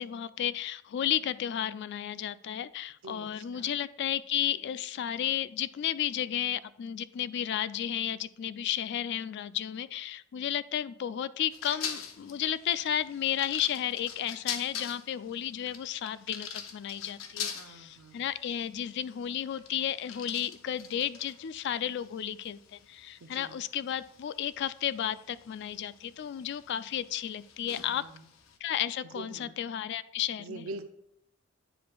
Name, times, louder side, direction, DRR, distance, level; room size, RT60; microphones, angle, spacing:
voice 1, 0.0-28.0 28.6-30.6, left 10 dB, 55° left, 17 dB, 0.3 m, -33 dB
voice 2, 3.0-3.8 17.6-18.2 23.2-23.6 27.9-28.3 29.1-29.5 30.4-30.8, right 2 dB, 85° right, 7 dB, 0.5 m, -44 dB
sound 1, 11.5-28.6, left 8 dB, 85° left, 0.7 m, -44 dB
9.8 x 5.0 x 2.3 m, 0.78 s
head